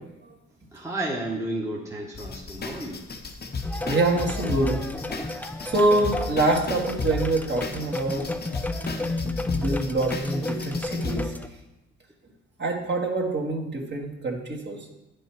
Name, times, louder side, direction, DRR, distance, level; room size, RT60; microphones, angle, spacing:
voice 1, 0.7-3.0, right 1 dB, 10° right, -2 dB, 1.3 m, -32 dB
sound 1, 2.1-11.2, left 3 dB, 35° left, 0.9 m, -33 dB
sound 2, 3.6-11.5, left 2 dB, 5° left, 0.4 m, -32 dB
voice 2, 3.8-4.8 5.6-8.3 9.2-11.4 12.6-14.9, right 2 dB, 35° right, 0 dB, 1.7 m, -25 dB
9.8 x 5.4 x 4.6 m, 0.96 s
cardioid pair, 90°, 30 cm